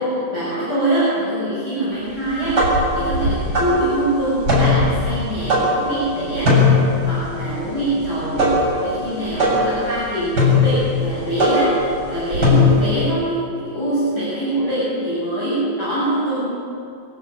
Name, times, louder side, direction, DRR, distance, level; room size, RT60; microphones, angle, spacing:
voice 1, 0.0-6.6 7.0-11.8 12.1-16.5, right 1 dB, 25° left, -10 dB, 7.1 m, -23 dB
sound 1, 2.3-13.1, left 2 dB, 25° right, 8.0 m, -19 dB
25.5 x 11.5 x 8.8 m, 2.5 s
omnidirectional pair, 4.0 m